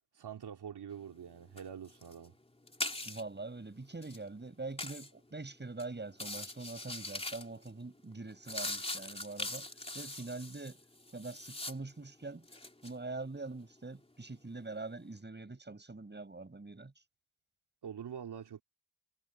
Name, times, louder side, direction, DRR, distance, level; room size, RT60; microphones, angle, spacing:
voice 1, 0.1-2.3 17.8-18.6, right 8 dB, 70° right, 3.4 m, -45 dB
sound 1, 1.0-1.3 1.6-3.4 3.9-4.2 4.8-5.1 5.7-5.8 6.1-7.7 8.1-12.0 12.4-13.0, left 2 dB, 15° left, 3.4 m, -41 dB
voice 2, 3.0-9.7 9.9-10.8 11.1-12.5 12.8-16.9, right 3 dB, 25° right, 6.9 m, -44 dB
cardioid pair, 80°, 41 cm